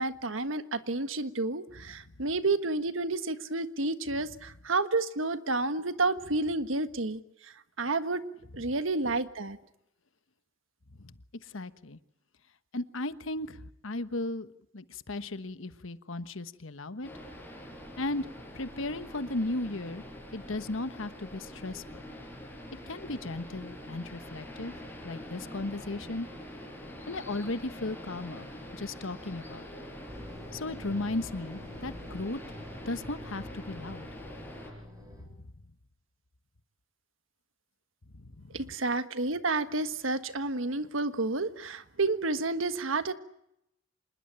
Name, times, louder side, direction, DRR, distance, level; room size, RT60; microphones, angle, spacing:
voice 1, 0.0-8.2 8.5-9.6 38.5-43.1, right 3 dB, 75° right, 11 dB, 1.5 m, -30 dB
voice 2, 11.4-12.0 12.7-17.1 18.0-20.0 20.3-21.8 22.9-24.7 25.0-26.3 27.1-28.5 28.7-29.8 30.5-32.4 32.8-34.0 35.1-35.5 38.1-38.6, left 2 dB, 75° left, 12 dB, 1.2 m, -36 dB
sound 1, 17.0-34.7, equal, 10° left, 7.0 m, -45 dB
sound 2, 30.1-35.2, left 1 dB, 20° right, 6.7 m, -46 dB
26.5 x 20.5 x 8.8 m, 0.82 s
head